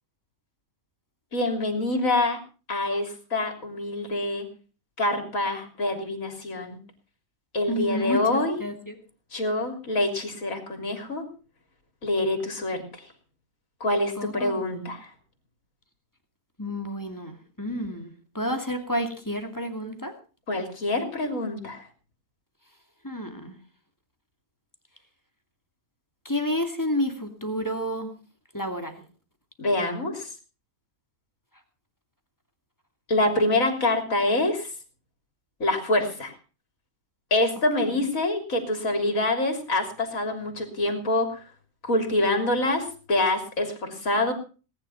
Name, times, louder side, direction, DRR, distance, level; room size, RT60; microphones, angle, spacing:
voice 1, 1.3-2.4 2.7-4.5 5.0-6.8 7.5-8.6 9.3-11.2 12.0-13.1 13.8-15.1 20.5-21.8 29.6-30.3 33.1-34.7 35.6-36.3 37.3-41.4 41.8-44.3, left 2 dB, 75° left, 5 dB, 3.7 m, -26 dB
voice 2, 7.7-9.0 14.2-14.7 16.6-20.1 23.0-23.6 26.2-28.1 28.5-29.0 37.9-38.0, equal, 15° left, 5 dB, 2.4 m, -30 dB
19.0 x 10.5 x 5.7 m, 0.37 s
omnidirectional pair, 1.4 m